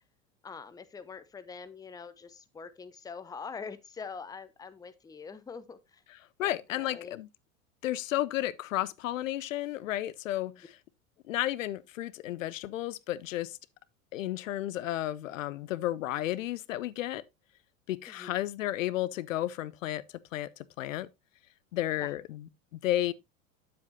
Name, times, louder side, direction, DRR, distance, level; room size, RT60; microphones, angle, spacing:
voice 1, 0.4-6.0 6.4-7.2 18.1-18.4 22.0-22.1, left 5 dB, 10° left, 0.6 m, -44 dB
voice 2, 6.1-7.3 7.8-10.8 11.3-13.6 14.1-17.2 17.9-20.0 20.3-21.1 21.7-23.1, left 14 dB, 70° left, 0.6 m, -33 dB
9.4 x 7.6 x 2.7 m
figure-of-eight pair, 80°, 41 cm